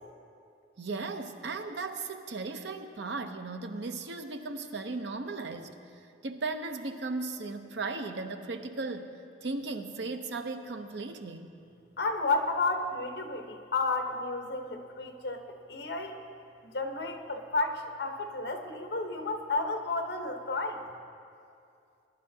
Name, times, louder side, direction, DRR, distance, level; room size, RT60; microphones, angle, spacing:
voice 1, 0.8-5.8 6.2-9.1 9.4-11.5, right 3 dB, 80° right, 7 dB, 0.8 m, -36 dB
voice 2, 12.0-16.2 16.6-20.8, left 3 dB, 70° left, 4 dB, 1.0 m, -32 dB
20.5 x 11.0 x 2.8 m, 2.5 s
head